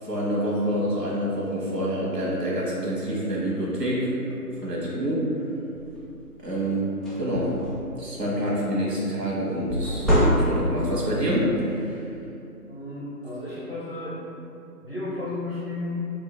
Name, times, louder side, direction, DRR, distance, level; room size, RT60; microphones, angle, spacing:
voice 1, 0.0-4.2 4.5-5.3 6.4-7.6 8.0-12.1, equal, 75° right, -6 dB, 1.3 m, -27 dB
sound 1, 5.7-6.0 6.5-6.6 6.9-8.0 9.7-10.9, equal, ahead, 0.4 m, -24 dB
voice 2, 12.7-14.3 14.8-16.0, left 2 dB, 35° left, -8 dB, 0.7 m, -33 dB
2.8 x 2.4 x 4.0 m, 2.7 s
figure-of-eight pair, 165°, 48 cm